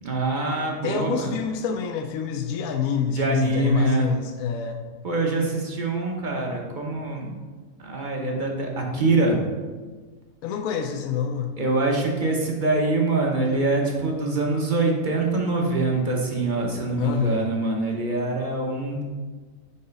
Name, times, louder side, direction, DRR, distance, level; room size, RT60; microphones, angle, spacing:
voice 1, 0.0-1.3 3.1-4.1 5.0-7.3 7.8-9.4 11.6-19.0, right 2 dB, 35° right, 0 dB, 1.0 m, -24 dB
voice 2, 0.8-4.8 10.4-11.5 17.0-17.6, left 7 dB, 75° left, 5 dB, 1.0 m, -27 dB
5.5 x 4.9 x 5.2 m, 1.4 s
omnidirectional pair, 1.6 m